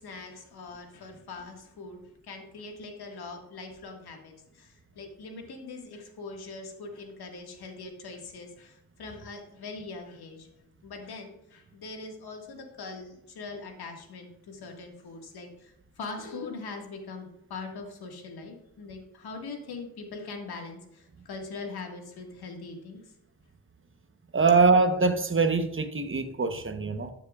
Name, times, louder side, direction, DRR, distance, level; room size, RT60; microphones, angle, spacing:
voice 1, 0.0-10.5 10.8-23.1, left 3 dB, 80° left, 1.8 m, -42 dB
voice 2, 24.3-27.1, right 4 dB, 35° right, 1.0 m, -23 dB
12.5 x 7.1 x 2.4 m
cardioid pair, 60°, 38 cm